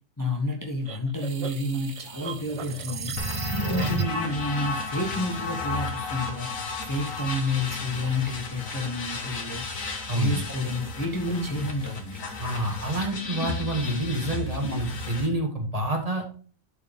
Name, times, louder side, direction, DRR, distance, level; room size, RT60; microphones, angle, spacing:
voice 1, 0.2-9.6 10.1-12.2, left 2 dB, 15° left, 0 dB, 1.1 m, -30 dB
sound 1, 0.9-4.4, right 4 dB, 50° right, 0.4 m, -32 dB
sound 2, 3.2-15.3, left 3 dB, 80° left, 1.8 m, -34 dB
voice 2, 10.1-10.4 12.4-16.2, right 1 dB, 30° right, 2 dB, 1.9 m, -28 dB
11.0 x 4.7 x 3.6 m, 0.42 s
omnidirectional pair, 1.4 m